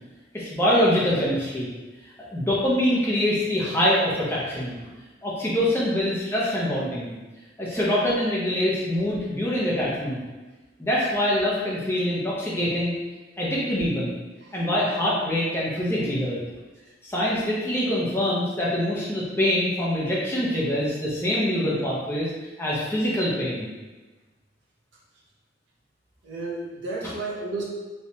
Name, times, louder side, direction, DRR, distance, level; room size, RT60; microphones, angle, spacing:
voice 1, 0.3-1.7 2.3-4.8 5.2-7.1 7.6-10.2 10.8-12.9 13.4-14.1 14.5-16.4 17.0-22.3 22.6-23.7, left 1 dB, 15° left, -6 dB, 0.8 m, -24 dB
voice 2, 26.2-27.6, right 3 dB, 90° right, -4 dB, 0.8 m, -32 dB
3.2 x 3.1 x 2.8 m, 1.2 s
head